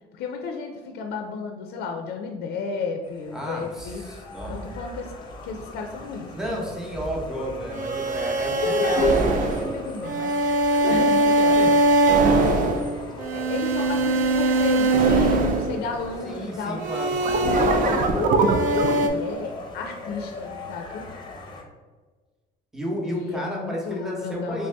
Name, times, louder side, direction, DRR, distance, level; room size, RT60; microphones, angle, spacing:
voice 1, 0.1-4.0 4.5-5.1 5.4-6.3 8.6-10.3 10.8-11.6 12.1-12.7 13.3-16.8 17.4-18.5 18.7-21.1 23.0-24.7, left 5 dB, 65° left, 4 dB, 0.4 m, -32 dB
sound 1, 3.0-21.6, left 2 dB, 25° left, 0.6 m, -39 dB
voice 2, 3.3-4.5 6.3-9.2 10.6-11.0 11.5-11.7 16.2-17.7 22.7-24.7, equal, 5° right, -3 dB, 0.8 m, -32 dB
sound 2, 7.7-16.2 16.8-19.1, right 2 dB, 50° right, 0.5 m, -21 dB
3.3 x 2.7 x 3.3 m, 1.3 s
cardioid pair, 110°, 17 cm